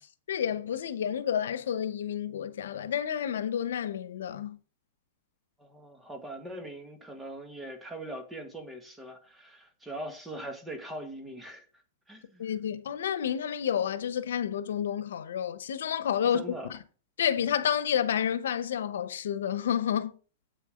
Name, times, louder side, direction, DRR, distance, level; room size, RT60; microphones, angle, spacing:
voice 1, 0.3-4.5 12.4-16.4 16.7-16.8 17.2-20.1, left 9 dB, 90° left, 0.9 m, -30 dB
voice 2, 5.6-11.6 12.1-12.5 16.3-16.7, right 1 dB, 5° right, 1.5 m, -41 dB
8.4 x 6.7 x 5.1 m
supercardioid pair, 155°, 0 cm